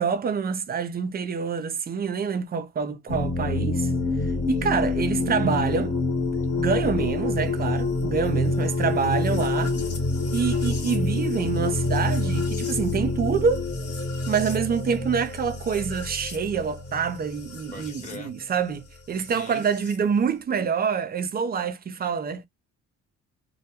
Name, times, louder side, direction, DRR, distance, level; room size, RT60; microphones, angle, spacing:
voice 1, 0.0-3.9 4.5-5.9 6.6-9.8 10.3-13.6 14.3-22.4, right 6 dB, 30° right, 0.4 m, -26 dB
sound 1, 3.1-18.2 19.3-20.0, left 3 dB, 50° left, 1.1 m, -27 dB
voice 2, 8.3-8.7 17.7-18.3 19.2-19.6, left 2 dB, 25° left, 1.1 m, -42 dB
2.2 x 2.1 x 2.8 m
cardioid pair, 90°, 30 cm